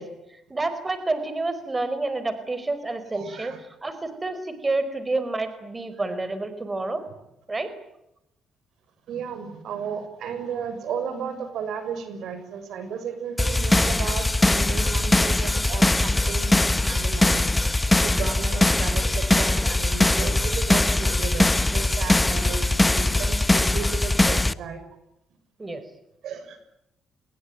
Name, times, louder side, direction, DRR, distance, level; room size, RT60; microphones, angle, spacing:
voice 1, 0.0-7.0 7.5-7.7 18.5-18.8 25.6-25.8, right 2 dB, 20° right, 11 dB, 4.8 m, -29 dB
voice 2, 3.1-3.6 9.1-17.5 17.9-24.8 26.2-26.6, right 6 dB, 75° right, 10 dB, 6.7 m, -34 dB
sound 1, 13.4-24.5, left 2 dB, 15° left, 1.1 m, -21 dB
28.0 x 22.0 x 9.4 m, 0.85 s
cardioid pair, 90°, 0 cm